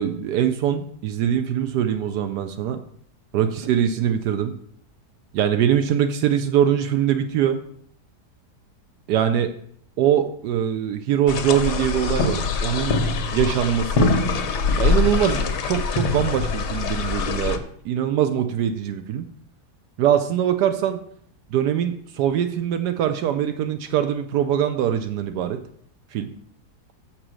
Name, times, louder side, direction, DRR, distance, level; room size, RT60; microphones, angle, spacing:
voice 1, 0.0-2.8 3.3-4.5 5.3-7.6 9.1-9.5 10.0-13.0 13.3-14.1 14.8-17.6 17.8-19.3 20.0-21.0 21.5-25.6 26.1-26.3, right 9 dB, 80° right, 8 dB, 1.2 m, -22 dB
sound 1, 11.3-17.6, left 4 dB, 85° left, 1.4 m, -23 dB
6.8 x 5.9 x 6.3 m, 0.66 s
omnidirectional pair, 1.7 m